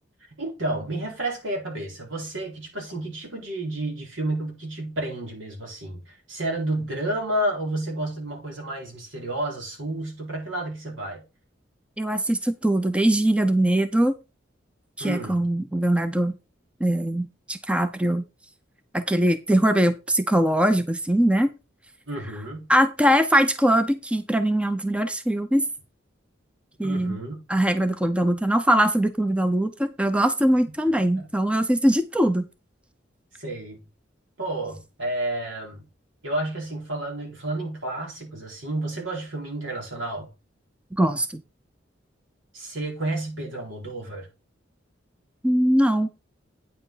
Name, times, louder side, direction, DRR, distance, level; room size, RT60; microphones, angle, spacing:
voice 1, 0.4-11.2 15.0-15.4 22.1-22.7 26.8-27.4 31.2-31.3 33.4-33.8 34.4-35.8 36.2-40.3 42.5-44.3, right 1 dB, 85° right, 4.1 m, -31 dB
voice 2, 12.0-14.1 15.0-16.4 16.8-18.2 18.9-21.5 22.7-25.6 26.8-27.2 27.5-32.5 40.9-41.4 45.4-46.1, right 1 dB, 5° right, 0.5 m, -21 dB
9.2 x 7.5 x 4.0 m
head